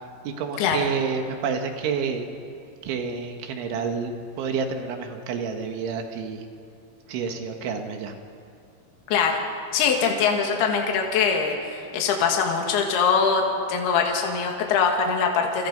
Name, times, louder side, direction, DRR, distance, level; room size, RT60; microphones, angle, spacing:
voice 1, 0.3-2.3 2.8-6.5 7.1-8.2, right 5 dB, 80° right, 5 dB, 4.1 m, -29 dB
voice 2, 9.1-9.4 9.7-13.4 13.7-15.7, left 6 dB, 65° left, 1 dB, 3.9 m, -22 dB
29.0 x 27.0 x 5.4 m, 2.4 s
omnidirectional pair, 5.3 m